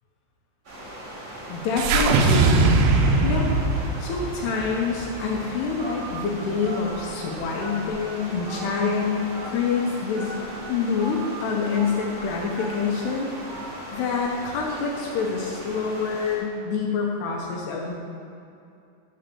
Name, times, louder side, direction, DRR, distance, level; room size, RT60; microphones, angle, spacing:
sound 1, 0.6-16.4, equal, 35° right, 2.4 m, -39 dB
voice 1, 1.5-2.8 3.2-3.5 4.0-10.3 10.7-13.3 13.9-17.9, left 5 dB, 75° left, -1 dB, 2.6 m, -26 dB
sound 2, 1.8-6.1, right 3 dB, 90° right, 2.3 m, -21 dB
Telephone, 5.8-6.1 6.6-6.8 7.6-8.0 8.5-8.6 9.3-9.5 10.1-10.3 11.0-11.1 11.7-11.9 12.6-12.8 13.5-13.7, equal, 75° right, 4.4 m, -38 dB
11.0 x 3.9 x 6.8 m, 2.5 s
omnidirectional pair, 5.3 m